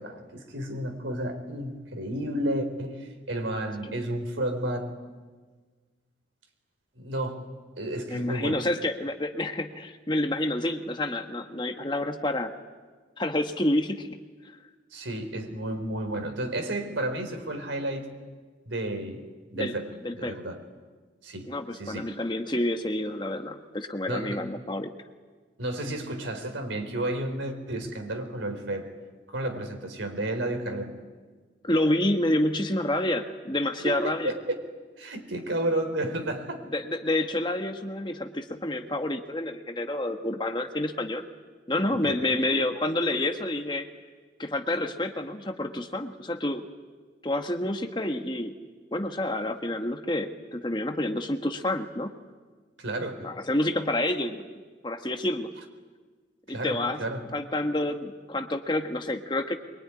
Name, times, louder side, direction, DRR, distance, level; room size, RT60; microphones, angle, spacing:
voice 1, 0.0-5.0 7.0-7.4 7.8-8.6 14.9-18.1 18.7-19.2 19.5-19.9 20.2-20.6 21.2-22.1 24.1-24.5 25.6-28.9 29.3-30.9 33.8-34.6 35.0-36.6 42.0-42.2 52.8-53.3 56.5-57.4, right 1 dB, 90° right, 5 dB, 4.2 m, -32 dB
voice 2, 8.1-12.5 13.2-14.2 14.4-14.6 19.5-19.7 20.0-20.4 21.5-24.9 31.6-34.3 36.7-41.3 41.7-43.9 44.4-46.7 47.2-48.5 48.9-52.1 53.2-54.4 54.8-55.5 56.5-57.0 57.3-59.6, left 1 dB, 25° left, 6 dB, 1.4 m, -28 dB
24.0 x 23.5 x 9.9 m, 1.4 s
head